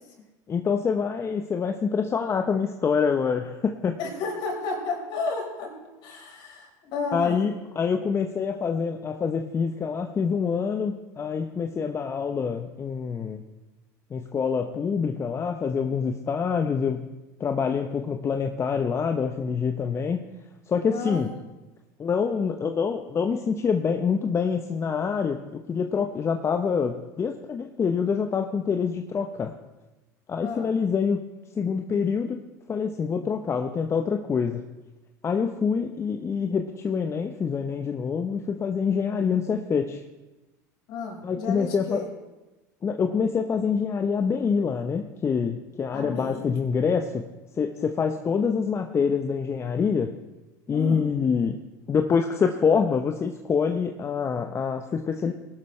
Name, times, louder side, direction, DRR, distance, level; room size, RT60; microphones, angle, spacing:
voice 1, 0.5-4.0 7.1-13.4 14.1-17.1 17.4-20.2 20.7-21.3 22.0-29.5 30.3-31.2 31.5-32.4 32.7-34.6 35.2-40.0 41.2-42.0 42.8-47.2 47.6-50.1 50.7-51.6 51.9-55.3, left 6 dB, 30° left, 5 dB, 0.9 m, -26 dB
voice 2, 4.0-5.7 6.0-7.4 20.9-21.3 30.4-30.7 40.9-42.1 45.9-46.5 50.7-51.0, left 4 dB, 55° left, 0 dB, 4.6 m, -32 dB
19.5 x 12.0 x 3.3 m, 1.1 s
hypercardioid pair, 85°, 9 cm